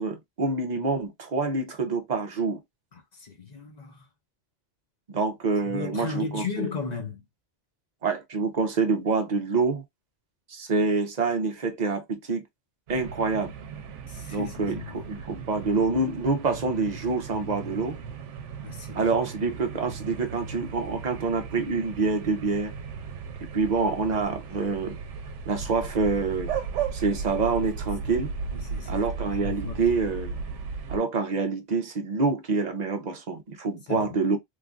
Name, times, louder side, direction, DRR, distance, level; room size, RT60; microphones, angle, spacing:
voice 1, 0.0-2.6 5.1-6.7 8.0-9.8 10.5-12.4 12.9-13.5 14.3-18.0 18.9-22.7 23.4-25.0 25.5-26.5 26.9-28.3 28.9-30.4 30.9-34.4, right 4 dB, 45° right, 0.6 m, -26 dB
voice 2, 2.9-4.0 5.7-7.2 14.1-15.1 18.6-19.2 28.5-29.0 29.4-30.0 33.9-34.1, left 4 dB, 45° left, 0.6 m, -36 dB
sound 1, 12.9-31.0, right 5 dB, 85° right, 0.9 m, -36 dB
3.1 x 2.4 x 2.3 m
omnidirectional pair, 1.2 m